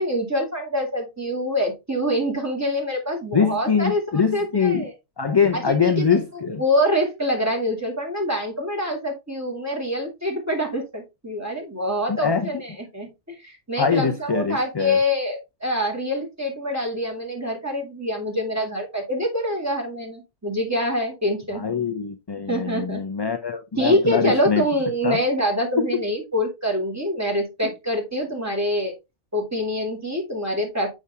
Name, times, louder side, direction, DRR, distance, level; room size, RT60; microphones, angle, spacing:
voice 1, 0.0-4.9 5.5-6.2 6.6-21.6 22.5-23.0 23.8-28.9 29.3-30.9, equal, 15° right, 2.4 m, -25 dB
voice 2, 3.3-4.8 5.2-6.6 12.1-12.5 13.8-15.0 21.5-24.6 25.0-25.2 25.8-25.9, left 6 dB, 30° left, 0.5 m, -23 dB
7.0 x 6.1 x 3.5 m
omnidirectional pair, 1.2 m